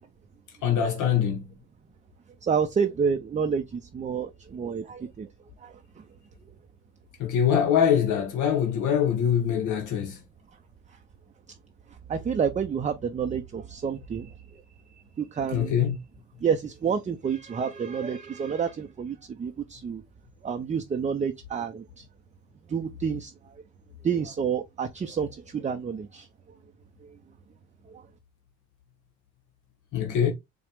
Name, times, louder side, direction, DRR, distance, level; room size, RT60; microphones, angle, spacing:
voice 1, 0.6-1.5 7.2-10.2 15.5-16.0 29.9-30.3, left 8 dB, 80° left, 0.8 m, -23 dB
voice 2, 2.4-5.3 5.6-6.0 12.1-14.6 15.2-15.8 16.4-20.0 20.4-22.1 22.7-23.3 24.0-26.3 27.9-28.0, right 6 dB, 25° right, 0.4 m, -29 dB
4.7 x 2.0 x 3.2 m
cardioid pair, 90°, 30 cm